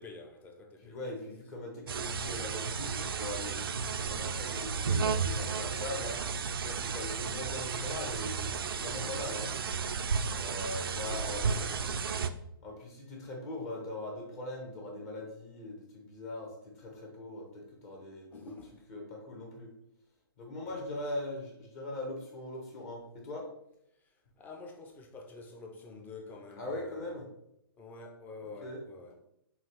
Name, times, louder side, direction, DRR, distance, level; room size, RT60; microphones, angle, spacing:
voice 1, 0.0-1.0 9.1-9.5 11.3-12.2 18.3-18.8 20.7-21.1 24.0-27.1 27.8-29.1, left 3 dB, 15° left, 0.5 m, -49 dB
voice 2, 0.8-3.6 4.0-6.2 6.6-9.5 10.4-11.5 12.6-18.5 18.9-19.7 20.4-23.5 26.6-27.3 28.6-28.8, left 2 dB, 40° left, 1.2 m, -41 dB
sound 1, 1.9-12.3, right 5 dB, 70° right, 0.4 m, -33 dB
5.5 x 2.4 x 3.1 m
figure-of-eight pair, 120°, 12 cm